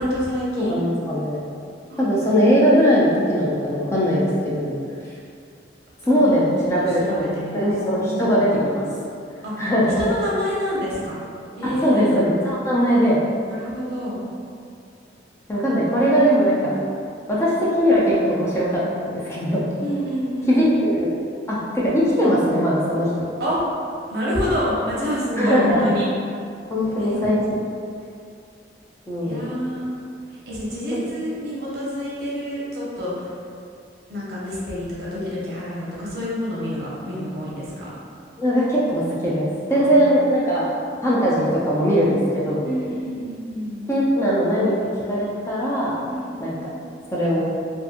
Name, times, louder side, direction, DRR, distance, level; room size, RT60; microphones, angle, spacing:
voice 1, 0.0-1.0 1.9-2.1 6.3-6.5 7.0-7.7 8.0-8.3 9.4-9.5 10.0-11.2 11.6-12.1 13.5-14.3 19.8-20.6 23.4-23.6 24.1-26.1 27.0-27.2 29.2-29.9 30.5-33.3 34.1-37.9 39.7-40.0 42.6-43.8 46.0-46.3, equal, 60° right, -7 dB, 0.7 m, -27 dB
voice 2, 0.6-1.4 2.0-4.7 6.1-8.8 9.6-10.0 11.8-13.2 15.5-16.8 17.3-19.7 20.5-21.1 21.5-23.1 25.4-25.9 26.7-27.4 29.1-29.5 38.4-40.7 41.0-42.6 43.9-44.8 45.1-46.0 46.4-46.5 47.1-47.4, equal, 15° left, -7 dB, 0.4 m, -20 dB
2.5 x 2.5 x 2.4 m, 2.4 s
head